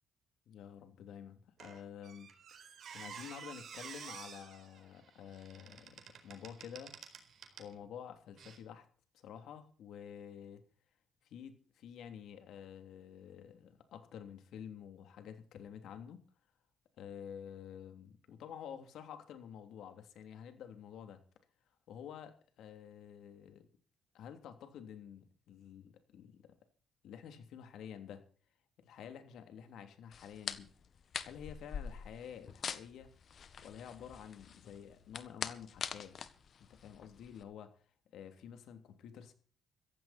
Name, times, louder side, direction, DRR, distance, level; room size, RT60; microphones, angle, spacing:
voice 1, 0.5-2.6 2.9-6.9 7.6-8.9 9.1-10.6 11.2-16.2 17.0-21.2 21.9-23.7 24.1-26.6 27.0-28.2 28.8-30.7 31.2-33.1 33.6-36.2 36.7-37.8 38.1-39.3, left 8 dB, 80° left, 7 dB, 3.2 m, -50 dB
Squeak, 1.6-7.8 8.4-8.6, right 7 dB, 60° right, 4.3 m, -51 dB
sound 1, 30.1-37.4, left 7 dB, 55° left, 1.6 m, -44 dB
15.5 x 15.0 x 4.4 m, 0.42 s
cardioid pair, 90°, 0 cm